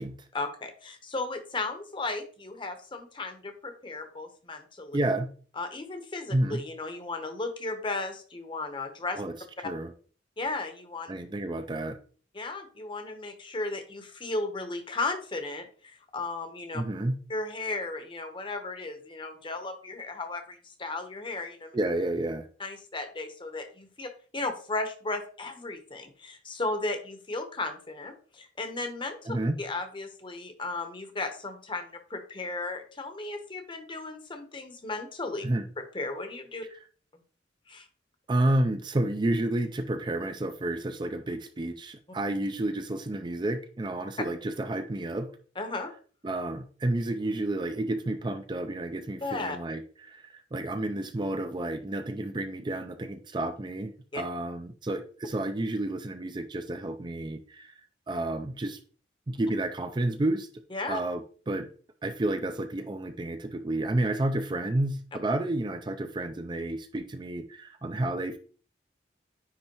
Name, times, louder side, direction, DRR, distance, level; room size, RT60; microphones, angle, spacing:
voice 1, 0.3-5.0 5.6-9.2 10.4-11.1 12.3-16.8 17.3-21.8 22.6-29.2 29.6-35.4 35.8-36.6 37.7-37.9 45.6-45.9 49.2-49.6 54.1-54.2 60.7-61.0, left 3 dB, 30° left, 6 dB, 0.9 m, -35 dB
voice 2, 4.9-5.3 6.3-6.6 9.2-9.9 11.1-12.0 16.7-17.2 21.7-22.5 29.3-29.6 35.4-35.7 38.3-45.3 46.2-57.7 58.1-58.8 59.3-60.5 60.9-61.7 62.0-68.4, right 1 dB, 25° right, 8 dB, 0.4 m, -30 dB
9.7 x 3.3 x 3.0 m, 0.42 s
head